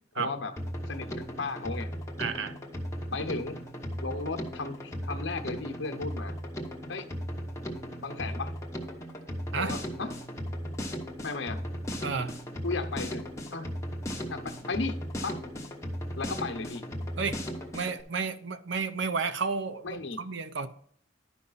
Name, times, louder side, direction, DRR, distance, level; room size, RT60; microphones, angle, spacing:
voice 1, 0.1-0.5 0.9-1.9 3.1-3.7 4.0-6.4 6.9-7.1 8.0-8.5 9.6-10.1 11.2-11.6 12.6-13.7 14.3-15.4 16.2-16.9 19.8-20.2, left 3 dB, 65° left, 1.0 m, -35 dB
Drum kit, 0.6-18.0, equal, 15° left, 1.0 m, -37 dB
voice 2, 2.2-2.6 9.5-9.8 12.0-12.3 17.2-17.4 17.7-20.7, right 5 dB, 65° right, 0.7 m, -32 dB
11.0 x 5.5 x 4.0 m
head